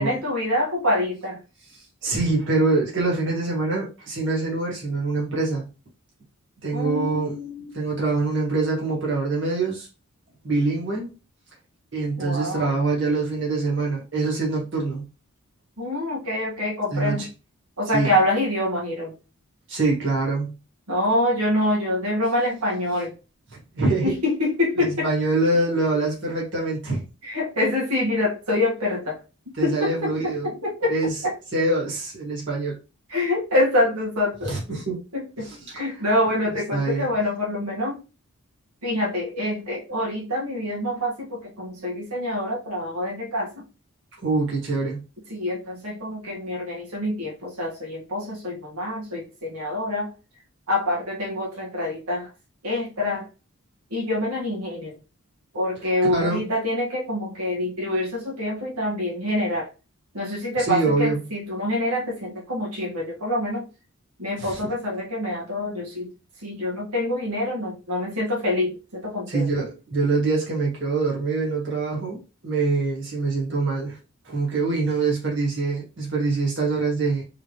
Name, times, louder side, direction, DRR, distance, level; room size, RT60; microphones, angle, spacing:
voice 1, 0.0-1.4 6.7-7.7 12.2-12.7 15.8-17.2 17.8-19.1 20.9-23.1 24.0-25.1 27.2-29.2 29.6-31.3 33.1-34.6 35.1-35.5 35.7-38.0 38.8-43.5 45.3-50.1 50.7-52.3 52.6-53.3 53.9-54.9 55.5-59.7 60.1-63.6 64.2-66.1 66.4-69.5, left 1 dB, 90° right, 1.5 m, -26 dB
voice 2, 1.7-5.7 6.6-7.4 7.7-9.9 10.4-11.2 11.9-15.0 16.9-17.3 17.9-18.1 19.7-20.6 23.8-24.1 24.9-27.0 29.6-30.5 30.9-31.2 31.5-32.8 34.4-35.0 35.4-35.9 36.7-37.1 44.2-45.0 56.0-56.4 60.6-61.2 64.4-64.6 69.3-74.0 74.2-77.2, right 3 dB, 55° right, 1.7 m, -24 dB
3.8 x 3.2 x 3.0 m
head